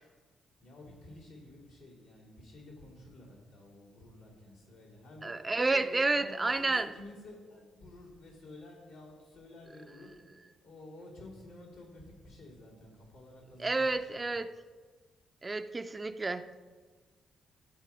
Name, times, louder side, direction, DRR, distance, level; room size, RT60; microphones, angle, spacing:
voice 1, 0.6-10.1 10.6-14.2, left 2 dB, 80° left, -7 dB, 3.1 m, -51 dB
voice 2, 5.2-6.9 13.6-14.5 15.4-16.4, right 3 dB, 25° right, 10 dB, 0.5 m, -30 dB
13.5 x 4.5 x 5.0 m, 1.4 s
hypercardioid pair, 45°, 0 cm